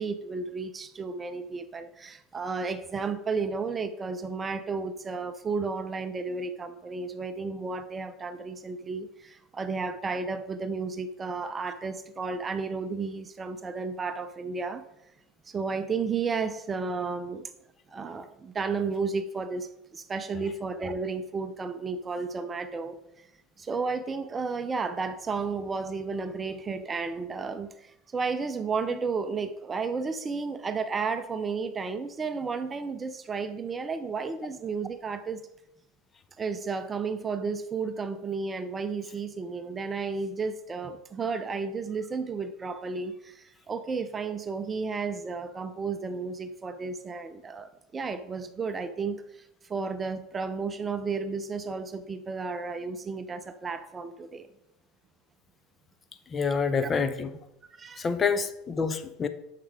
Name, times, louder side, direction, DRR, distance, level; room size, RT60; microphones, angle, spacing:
voice 1, 0.0-14.8 15.5-17.5 17.9-23.3 23.6-35.5 36.4-54.5 56.8-56.9 57.7-58.1, right 4 dB, 25° right, 11 dB, 0.6 m, -33 dB
voice 2, 56.3-57.3 58.0-59.3, left 5 dB, 25° left, 11 dB, 0.7 m, -27 dB
9.9 x 6.6 x 3.7 m, 0.85 s
figure-of-eight pair, 75°, 0 cm